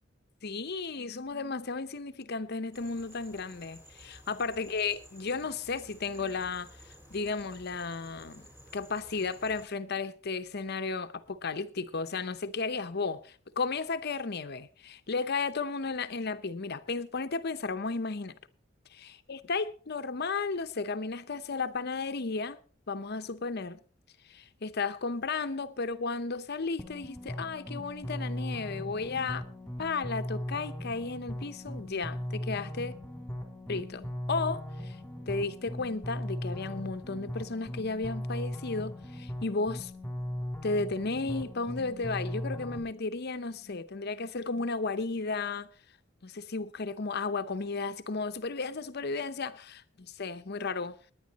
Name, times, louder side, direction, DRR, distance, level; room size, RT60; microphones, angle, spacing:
voice 1, 0.4-6.7 7.1-8.5 8.7-18.4 18.9-22.6 22.9-23.8 24.3-29.5 29.8-32.9 33.7-35.0 35.3-39.9 40.6-45.7 46.2-50.9, left 4 dB, 55° left, 0.8 m, -34 dB
sound 1, 2.7-9.7, equal, 10° right, 3.9 m, -54 dB
sound 2, 26.8-42.8, left 1 dB, 5° left, 2.6 m, -38 dB
19.5 x 10.0 x 4.1 m
head